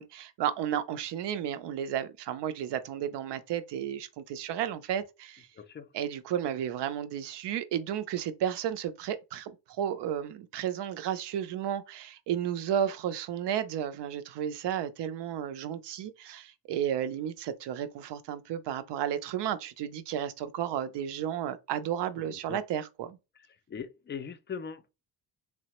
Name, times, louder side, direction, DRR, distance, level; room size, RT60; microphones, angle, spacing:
voice 1, 0.0-5.5 5.9-23.2, right 10 dB, 70° right, 0.6 m, -33 dB
voice 2, 5.6-5.9 22.2-22.6 23.7-24.9, left 6 dB, 30° left, 0.3 m, -40 dB
3.3 x 2.0 x 2.9 m
cardioid pair, 95°, 43 cm